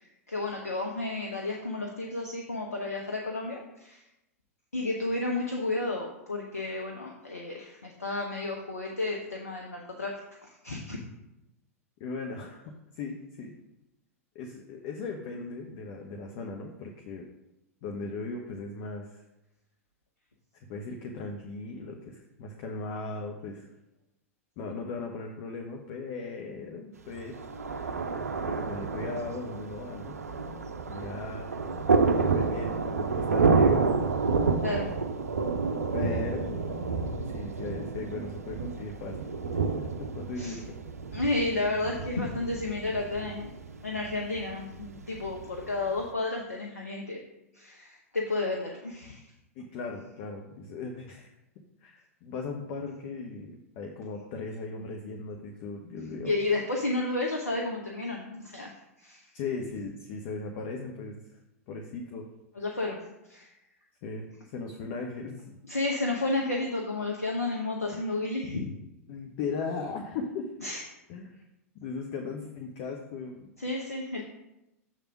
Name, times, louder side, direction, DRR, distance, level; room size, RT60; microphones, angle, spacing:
voice 1, 0.3-4.0 4.7-10.1 10.4-11.0 34.6-34.9 40.4-40.6 41.1-43.5 43.8-47.2 47.5-49.3 56.2-58.7 59.0-59.3 62.6-63.0 63.3-63.5 65.7-68.6 70.6-70.8 73.6-74.2, left 2 dB, 85° left, 0 dB, 0.8 m, -32 dB
voice 2, 12.0-13.5 14.3-17.3 17.8-19.2 20.5-23.7 24.6-27.5 27.7-28.1 28.4-30.2 30.9-31.6 32.2-33.9 35.9-36.6 37.3-39.3 39.8-40.8 49.6-51.3 51.8-56.4 59.3-61.2 61.7-62.3 64.0-65.6 67.9-68.0 69.1-70.5 71.1-71.3 71.8-73.5, left 3 dB, 50° left, 2 dB, 0.9 m, -38 dB
Thunder, 27.1-46.0, right 4 dB, 80° right, 0.5 m, -29 dB
7.5 x 3.5 x 5.8 m, 0.92 s
figure-of-eight pair, 95°, 8 cm